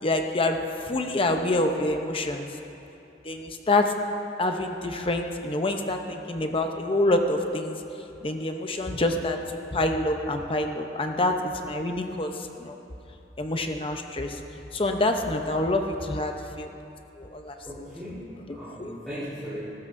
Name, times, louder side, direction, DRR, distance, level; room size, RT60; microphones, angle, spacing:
voice 1, 0.0-2.5 3.2-3.9 4.4-7.8 8.2-9.4 9.7-12.8 13.4-14.4 14.7-16.7 17.2-17.6 18.5-19.0, left 2 dB, 30° left, 4 dB, 0.8 m, -27 dB
voice 2, 17.6-19.6, equal, 5° left, -12 dB, 3.7 m, -37 dB
19.5 x 15.5 x 2.7 m, 2.8 s
head